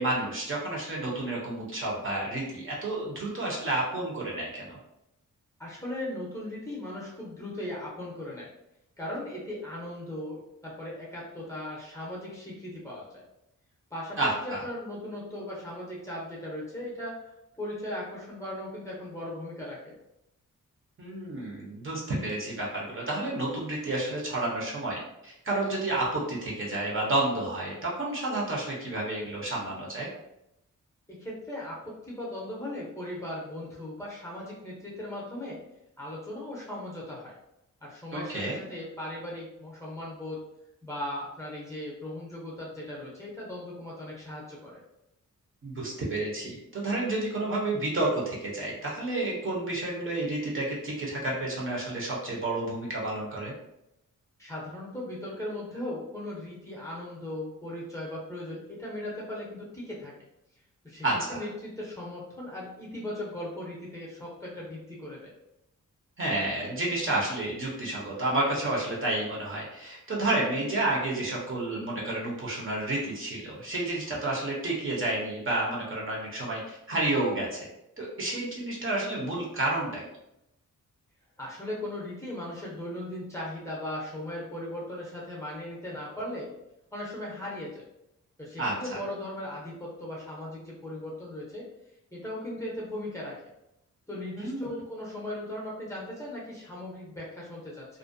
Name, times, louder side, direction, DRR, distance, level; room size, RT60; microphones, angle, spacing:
voice 1, 0.0-4.8 14.2-14.6 21.0-30.1 38.1-38.6 45.6-53.5 61.0-61.4 66.2-77.7 78.0-80.0 88.6-88.7 94.4-94.7, right 2 dB, 40° right, -4 dB, 0.6 m, -30 dB
voice 2, 5.6-8.5 9.0-13.2 13.9-17.3 17.6-19.9 31.1-35.6 36.0-37.3 37.8-40.4 40.8-44.8 54.4-60.1 60.8-65.3 81.4-86.5 86.9-87.8 88.4-91.6 92.1-93.3 94.1-97.9, left 1 dB, 10° left, -5 dB, 0.6 m, -38 dB
2.4 x 2.1 x 2.5 m, 0.84 s
wide cardioid pair, 150°, 33 cm